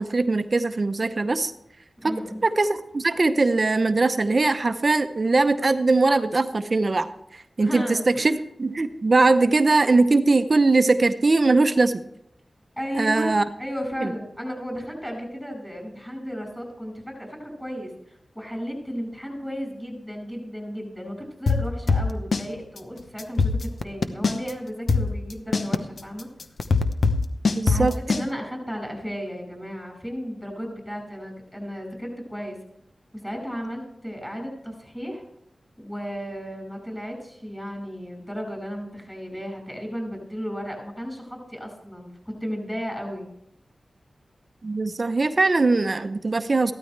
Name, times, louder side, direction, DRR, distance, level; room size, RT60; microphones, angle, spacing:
voice 1, 0.0-1.5 2.0-7.1 7.3-12.0 13.0-13.4 14.0-14.1 27.5-27.9 44.6-46.7, right 3 dB, 50° right, 9 dB, 0.7 m, -21 dB
voice 2, 2.0-2.4 7.6-8.3 12.8-26.3 27.7-32.6 33.2-35.2 35.8-43.3, equal, 5° left, 2 dB, 5.7 m, -34 dB
sound 1, 21.5-22.5 22.8-22.9 23.2-24.5 24.9-28.3, left 4 dB, 75° left, 0.8 m, -21 dB
15.0 x 12.5 x 3.3 m, 0.76 s
cardioid pair, 55°, 0 cm